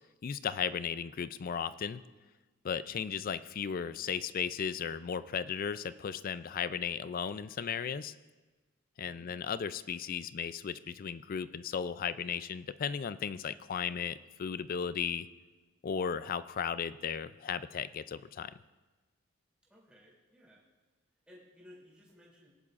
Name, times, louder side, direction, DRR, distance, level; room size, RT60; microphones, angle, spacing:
voice 1, 0.2-2.0 2.6-8.1 9.0-15.3 15.8-18.5, left 7 dB, 40° left, 14 dB, 0.3 m, -35 dB
voice 2, 9.0-9.4 19.6-20.6 21.3-22.5, left 1 dB, 5° right, -6 dB, 3.0 m, -58 dB
19.0 x 11.0 x 2.5 m, 1.2 s
head